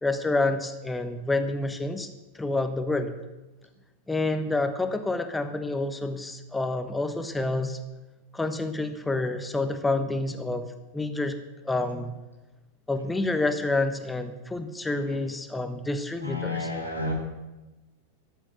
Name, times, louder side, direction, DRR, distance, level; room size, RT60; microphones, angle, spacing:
voice 1, 0.0-2.1 2.3-3.1 4.1-7.8 8.3-10.7 10.9-11.4 11.6-12.1 12.9-16.6, left 2 dB, 10° left, 8 dB, 1.1 m, -28 dB
voice 2, 16.2-17.1, left 2 dB, 90° right, 1 dB, 2.9 m, -32 dB
13.5 x 8.1 x 8.3 m, 1.1 s
figure-of-eight pair, 90°, 0 cm